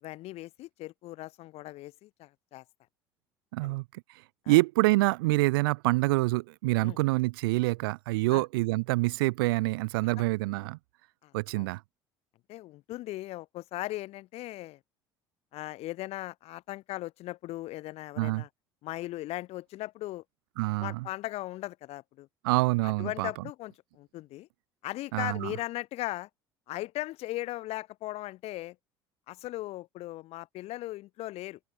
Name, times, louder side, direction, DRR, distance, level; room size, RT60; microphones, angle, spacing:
voice 1, 0.0-2.6 3.6-3.7 4.4-4.6 6.8-7.0 8.3-8.4 11.2-11.7 12.5-14.8 15.5-18.5 18.8-20.2 20.8-22.3 22.8-24.5 24.8-26.3 26.7-28.8 29.3-31.6, left 17 dB, 55° left, 1.3 m, -38 dB
voice 2, 3.5-3.8 4.5-10.8 11.3-11.8 18.2-18.4 20.6-21.1 22.4-23.3 25.1-25.5, right 22 dB, 65° right, 0.5 m, -26 dB
open air
figure-of-eight pair, 60°, 13 cm